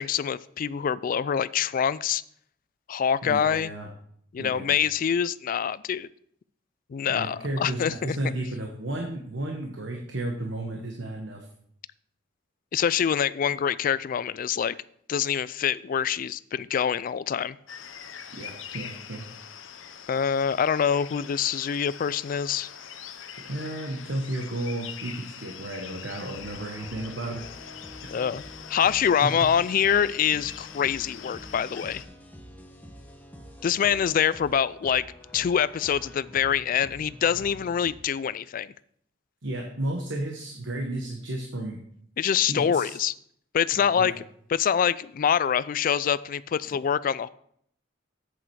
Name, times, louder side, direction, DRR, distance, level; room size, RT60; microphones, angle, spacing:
voice 1, 0.0-2.2 2.9-3.7 4.3-6.1 6.9-8.2 12.7-14.8 15.1-17.6 20.1-22.7 28.1-28.4 28.7-32.0 33.6-35.0 35.3-38.7 42.2-43.1 43.5-44.1 44.5-47.3, left 8 dB, 45° left, 18 dB, 0.3 m, -25 dB
voice 2, 3.2-3.9 4.4-4.7 7.1-11.4 18.3-19.2 23.5-27.4 28.0-28.2 29.2-29.3 39.4-41.8 42.5-43.0 43.8-44.1, right 1 dB, 70° right, 1 dB, 1.2 m, -33 dB
sound 1, 17.7-32.0, left 8 dB, 90° left, 0.8 m, -43 dB
sound 2, 26.2-37.9, left 1 dB, 10° left, 1.1 m, -46 dB
8.3 x 7.7 x 4.7 m, 0.67 s
head